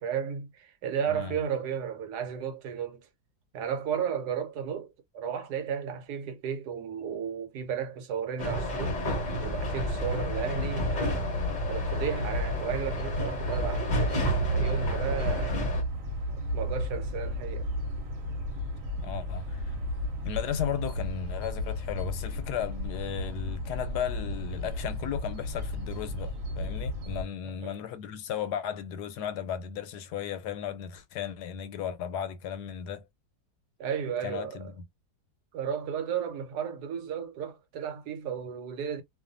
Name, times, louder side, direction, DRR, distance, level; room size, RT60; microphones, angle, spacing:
voice 1, 0.0-3.1 3.5-9.0 9.4-11.3 11.7-15.6 16.5-17.7 27.6-27.8 33.8-34.7 35.5-39.0, right 7 dB, 80° right, 1.2 m, -34 dB
sound 1, 8.4-15.8, equal, 40° left, 0.7 m, -31 dB
sound 2, 9.2-27.2, equal, 60° right, 1.1 m, -33 dB
voice 2, 19.0-19.8 20.2-33.0 34.2-34.7, left 9 dB, 85° left, 1.2 m, -35 dB
2.6 x 2.4 x 2.5 m
omnidirectional pair, 1.7 m